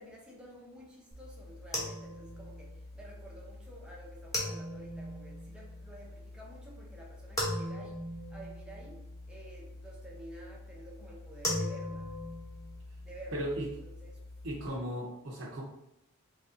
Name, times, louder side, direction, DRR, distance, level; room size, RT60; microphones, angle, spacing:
voice 1, 0.0-8.0 8.3-12.1 13.0-13.5 13.8-14.2, right 1 dB, 5° right, -3 dB, 0.6 m, -51 dB
sound 1, 1.1-14.7, left 1 dB, 15° left, 1.0 m, -40 dB
voice 2, 13.3-13.6 14.4-15.6, equal, 65° right, -5 dB, 0.8 m, -36 dB
3.1 x 2.7 x 3.6 m, 0.86 s
head